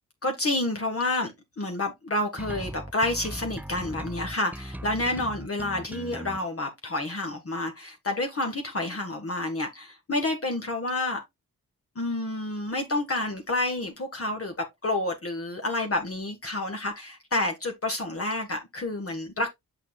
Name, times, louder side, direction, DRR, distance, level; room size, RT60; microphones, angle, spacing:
voice 1, 0.2-11.2 11.9-19.5, left 2 dB, 35° left, 1.6 m, -29 dB
sound 1, 2.4-6.4, right 1 dB, 5° right, 0.5 m, -38 dB
7.0 x 5.7 x 2.4 m
supercardioid pair, 55°, 37 cm